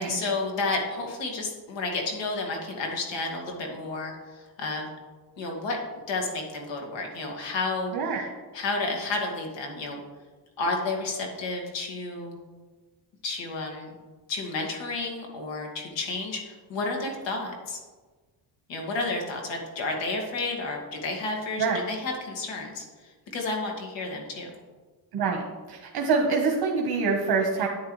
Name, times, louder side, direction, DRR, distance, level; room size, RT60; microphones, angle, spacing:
voice 1, 0.0-4.9 5.4-5.8 6.1-7.9 8.5-10.0 10.6-12.4 13.2-13.9 14.3-17.8 18.7-22.8 23.3-24.5, left 3 dB, 90° left, 1 dB, 2.1 m, -31 dB
voice 2, 25.7-27.7, right 4 dB, 55° right, 1 dB, 1.3 m, -25 dB
9.7 x 9.5 x 3.2 m, 1.3 s
cardioid pair, 130°, 43 cm